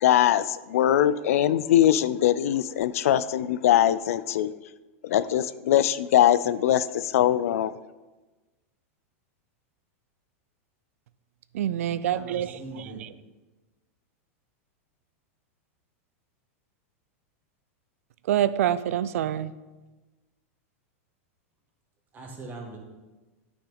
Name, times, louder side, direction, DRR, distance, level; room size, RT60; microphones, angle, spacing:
voice 1, 0.0-4.5 5.0-7.7, left 11 dB, 80° left, 16 dB, 0.4 m, -22 dB
voice 2, 11.5-12.6 18.3-19.5, right 11 dB, 80° right, 15 dB, 0.4 m, -26 dB
voice 3, 12.1-13.0 22.1-22.8, right 2 dB, 25° right, 1 dB, 1.5 m, -41 dB
9.8 x 6.0 x 3.9 m, 1.2 s
supercardioid pair, 140°, 8 cm